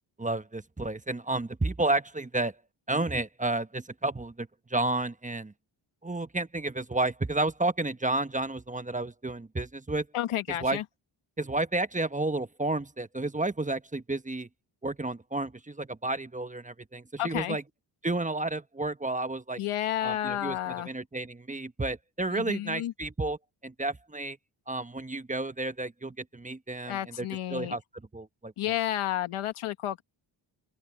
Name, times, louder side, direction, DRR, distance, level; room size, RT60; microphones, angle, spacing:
voice 1, 0.2-2.6 2.9-5.5 6.0-10.1 10.5-10.8 11.4-14.5 14.8-17.6 18.0-19.6 20.0-24.4 24.7-27.8 28.1-28.7, right 2 dB, 15° right, 1.1 m, -31 dB
voice 2, 10.1-10.8 17.2-17.6 19.6-20.9 22.3-22.9 26.8-27.8 28.6-30.0, left 12 dB, 90° left, 1.5 m, -31 dB
open air
cardioid pair, 60°, 49 cm